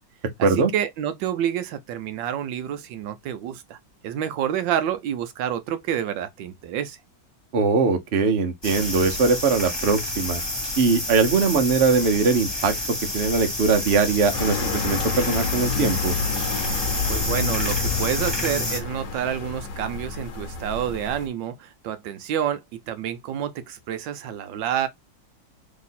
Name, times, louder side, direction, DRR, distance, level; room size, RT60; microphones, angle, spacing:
voice 1, 0.4-3.8 4.0-7.0 17.1-22.6 22.9-24.9, right 10 dB, 75° right, 1.2 m, -28 dB
voice 2, 7.5-10.4 10.8-12.7 13.1-16.1, right 4 dB, 50° right, 0.8 m, -21 dB
sound 1, 8.6-18.8, left 1 dB, 15° left, 1.7 m, -29 dB
sound 2, 14.3-21.3, left 5 dB, 70° left, 1.4 m, -30 dB
3.2 x 3.0 x 4.0 m
omnidirectional pair, 2.1 m